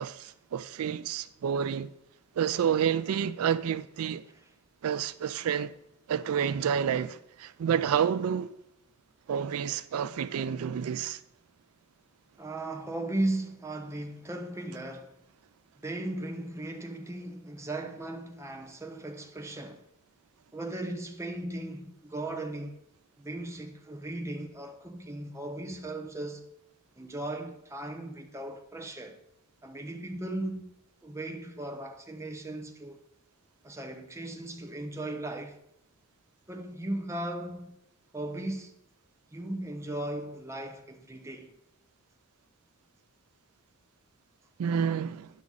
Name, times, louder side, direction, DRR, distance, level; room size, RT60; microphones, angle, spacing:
voice 1, 0.0-1.9 2.4-4.2 4.8-5.7 6.1-8.5 9.3-11.2 44.6-45.3, right 8 dB, 85° right, 0.4 m, -29 dB
voice 2, 12.4-15.2 15.8-19.8 20.5-22.8 23.2-26.5 27.0-29.2 29.6-30.7 31.0-33.0 33.6-35.6 36.5-37.7 38.1-38.8 39.3-41.5, right 1 dB, 15° right, 0.7 m, -37 dB
9.5 x 6.1 x 3.9 m
head